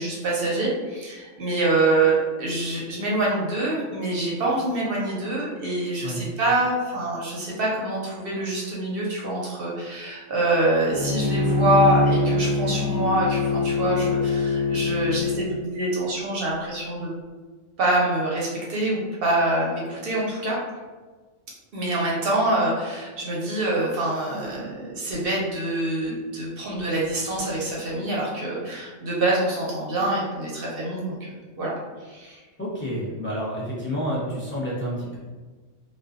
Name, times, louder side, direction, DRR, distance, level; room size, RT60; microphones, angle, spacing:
voice 1, 0.0-17.1 17.8-20.6 21.7-31.7 32.0-32.4, right 2 dB, 60° right, -4 dB, 0.7 m, -25 dB
Bowed string instrument, 10.9-15.5, left 3 dB, 55° left, 1.0 m, -23 dB
voice 2, 32.6-35.2, equal, 15° left, -8 dB, 0.4 m, -29 dB
2.5 x 2.2 x 2.3 m, 1.4 s
omnidirectional pair, 1.3 m